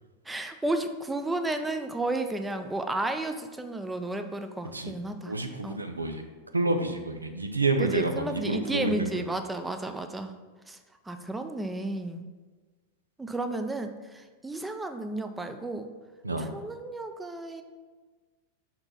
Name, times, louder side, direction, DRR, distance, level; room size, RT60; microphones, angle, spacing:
voice 1, 0.3-5.3 5.6-5.8 7.8-10.3 10.7-10.8 11.1-12.3 13.2-15.9 16.4-17.6, right 2 dB, 10° right, 7 dB, 0.5 m, -32 dB
voice 2, 5.3-6.2 6.5-9.2 16.2-16.5, right 2 dB, 80° right, 5 dB, 0.6 m, -29 dB
5.6 x 4.4 x 5.6 m, 1.3 s
figure-of-eight pair, 90°, 0 cm